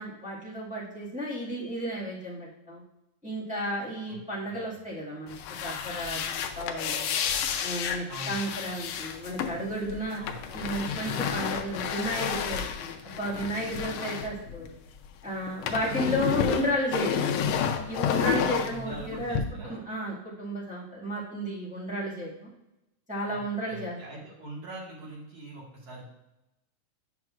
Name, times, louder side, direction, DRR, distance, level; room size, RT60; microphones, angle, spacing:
voice 1, 0.0-2.8 3.2-7.1 7.6-10.2 10.5-14.7 15.2-17.4 17.9-19.4 19.6-22.5 23.1-24.0, equal, 5° right, -8 dB, 0.5 m, -33 dB
sound 1, 5.3-15.1 15.3-19.4, left 8 dB, 85° left, 1.4 m, -31 dB
voice 2, 8.1-8.6 10.2-10.6 14.0-14.2 18.7-19.8 23.3-23.4 23.7-26.1, right 2 dB, 55° right, -3 dB, 2.6 m, -43 dB
9.2 x 5.9 x 2.4 m, 0.94 s
omnidirectional pair, 3.7 m